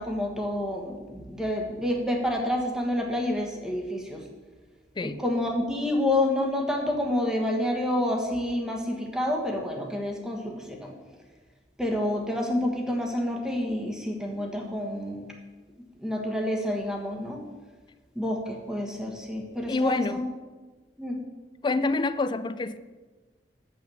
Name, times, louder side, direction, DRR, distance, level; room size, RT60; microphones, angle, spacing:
voice 1, 0.0-4.2 5.0-10.9 11.8-15.2 16.0-17.4 18.1-20.2 21.0-21.2, left 1 dB, 5° right, 1 dB, 1.3 m, -28 dB
voice 2, 19.7-20.2 21.6-22.8, left 3 dB, 25° left, 13 dB, 0.4 m, -27 dB
7.9 x 5.7 x 7.0 m, 1.3 s
head